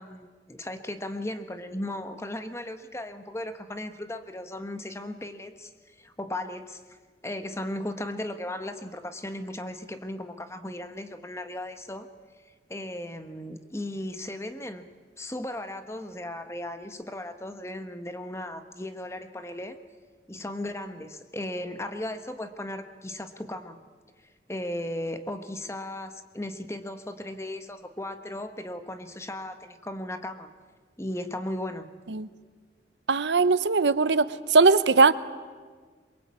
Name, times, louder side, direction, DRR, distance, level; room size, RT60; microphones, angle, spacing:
voice 1, 0.0-6.8 7.2-12.1 12.7-14.9 15.2-19.8 20.3-23.8 24.5-30.5 31.0-31.9, left 1 dB, 15° left, 9 dB, 1.2 m, -36 dB
voice 2, 33.1-35.1, right 4 dB, 85° right, 15 dB, 0.8 m, -20 dB
23.0 x 22.5 x 8.5 m, 1.5 s
head